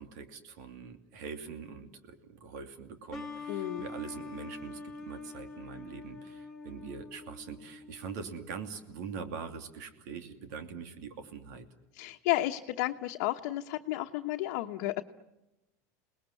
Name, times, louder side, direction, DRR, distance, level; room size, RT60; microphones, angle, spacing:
voice 1, 0.0-11.7, right 6 dB, 80° right, 7 dB, 2.8 m, -43 dB
sound 1, 3.1-8.6, left 3 dB, 5° left, 2.6 m, -45 dB
voice 2, 3.5-3.9 11.9-15.0, left 16 dB, 70° left, 0 dB, 1.1 m, -32 dB
29.0 x 20.0 x 10.0 m, 0.97 s
supercardioid pair, 145°, 9 cm